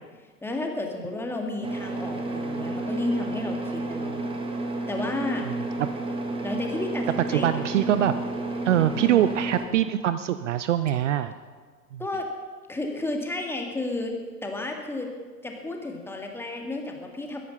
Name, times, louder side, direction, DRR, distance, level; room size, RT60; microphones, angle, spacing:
voice 1, 0.4-4.2 4.9-5.5 6.4-7.8 8.9-9.3 12.0-12.3 12.7-15.1 15.4-17.4, left 2 dB, 5° left, 2 dB, 1.9 m, -32 dB
sound 1, 1.6-9.7, right 2 dB, 10° right, 1.6 m, -31 dB
voice 2, 5.5-5.9 7.3-8.2 8.6-11.3 11.9-12.0, right 11 dB, 50° right, 12 dB, 0.7 m, -24 dB
21.5 x 10.0 x 5.7 m, 1.5 s
figure-of-eight pair, 110°, 47 cm